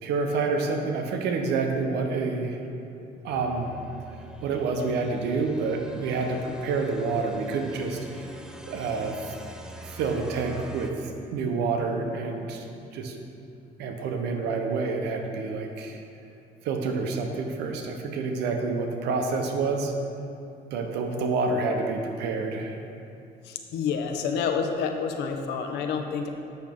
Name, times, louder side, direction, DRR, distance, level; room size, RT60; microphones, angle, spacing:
voice 1, 0.0-2.6 2.9-3.7 4.4-8.0 8.7-9.3 9.8-12.7 12.9-13.1 13.8-16.0 16.6-19.9 20.7-22.8, right 4 dB, 85° right, 3 dB, 0.9 m, -28 dB
sound 1, 3.3-10.9, right 1 dB, 5° right, 0.5 m, -44 dB
voice 2, 23.5-26.3, left 6 dB, 85° left, 4 dB, 0.7 m, -28 dB
8.0 x 6.4 x 3.6 m, 2.6 s
cardioid pair, 110°, 17 cm